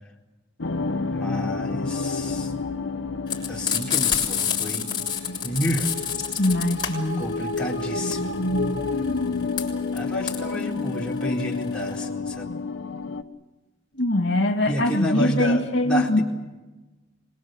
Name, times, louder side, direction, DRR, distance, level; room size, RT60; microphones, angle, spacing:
sound 1, 0.6-13.2, left 3 dB, 80° left, 1.2 m, -29 dB
voice 1, 1.1-2.5 3.5-4.9 5.4-5.9 7.2-8.4 9.9-12.5 14.7-16.2, equal, 5° left, -4 dB, 4.3 m, -30 dB
Frying (food), 3.3-12.0, left 8 dB, 25° left, 5.8 m, -28 dB
voice 2, 6.4-7.3 13.9-16.2, left 1 dB, 65° left, 4 dB, 2.4 m, -22 dB
25.0 x 21.5 x 8.1 m, 1.1 s
head